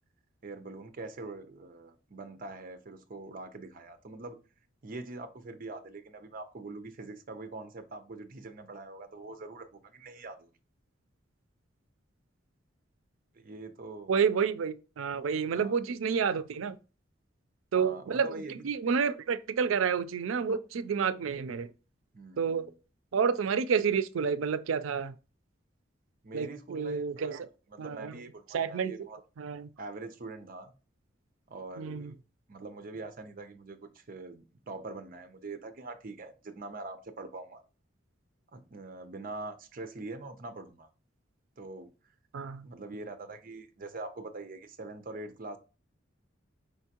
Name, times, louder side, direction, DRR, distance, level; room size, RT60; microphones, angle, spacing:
voice 1, 0.4-4.4 4.8-10.5 13.3-14.1 15.5-15.8 17.7-18.6 22.1-22.7 26.2-27.4 27.7-29.2 29.8-30.7 31.5-32.2 32.5-37.6 38.5-40.9 41.6-41.9 42.6-45.6, right 3 dB, 45° right, 0.6 m, -43 dB
voice 2, 14.1-16.8 17.7-21.7 22.4-22.7 23.1-25.1 26.3-27.5 27.8-28.1 28.5-28.9 29.4-29.7 31.8-32.1 42.3-42.7, right 6 dB, 90° right, 0.4 m, -29 dB
5.1 x 3.5 x 2.8 m
head